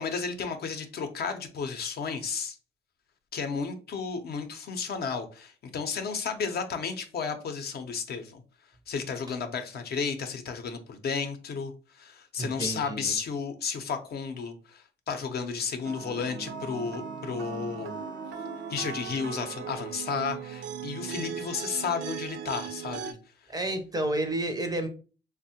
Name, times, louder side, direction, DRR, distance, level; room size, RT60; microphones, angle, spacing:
voice 1, 0.0-2.6 3.3-8.4 8.9-11.7 12.0-17.9 18.7-23.1, left 5 dB, 55° left, 0.5 m, -33 dB
voice 2, 12.4-13.2 23.5-24.9, right 1 dB, 20° right, 0.5 m, -30 dB
sound 1, 15.8-23.1, right 7 dB, 70° right, 0.5 m, -38 dB
3.3 x 2.1 x 2.7 m
cardioid pair, 90°, 20 cm